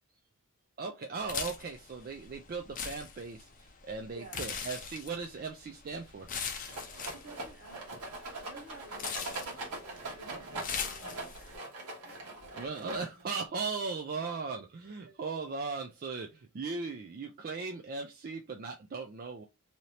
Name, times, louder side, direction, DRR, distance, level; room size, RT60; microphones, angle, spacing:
voice 1, 0.8-6.3 12.6-19.5, right 4 dB, 40° right, 0.4 m, -38 dB
sound 1, 1.2-11.6, left 6 dB, 35° left, 0.5 m, -41 dB
voice 2, 4.1-4.5 7.1-11.3 12.0-12.3 13.2-13.3 14.1-14.5 14.9-15.5, right 2 dB, 70° right, 1.3 m, -53 dB
Rattle, 6.7-13.3, right 2 dB, 85° right, 1.2 m, -42 dB
2.8 x 2.6 x 3.1 m
head